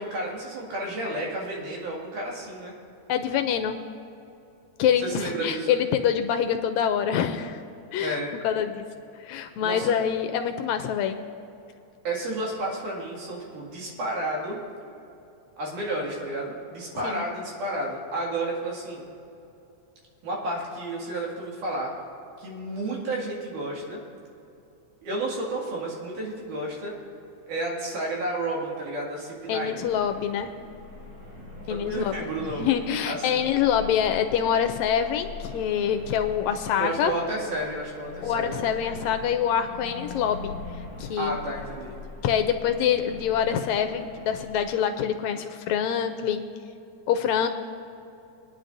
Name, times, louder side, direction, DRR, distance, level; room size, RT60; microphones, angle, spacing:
voice 1, 0.0-2.7 5.0-5.8 8.0-8.3 9.6-9.9 12.1-14.6 15.6-19.0 20.2-21.9 22.4-24.0 25.0-26.9 27.5-29.8 31.7-32.8 33.0-33.5 36.8-38.6 41.2-42.0, right 1 dB, 85° right, -3 dB, 3.6 m, -31 dB
voice 2, 3.1-3.8 4.8-7.6 7.9-8.2 8.4-8.8 9.2-11.2 17.0-17.2 29.5-30.5 31.7-37.1 38.2-40.5 41.0-41.4 42.2-46.4 47.1-47.5, left 8 dB, 80° left, 8 dB, 1.7 m, -25 dB
sound 1, 29.8-44.7, left 2 dB, 45° right, 2.6 m, -42 dB
22.0 x 9.9 x 2.6 m, 2.7 s
omnidirectional pair, 3.5 m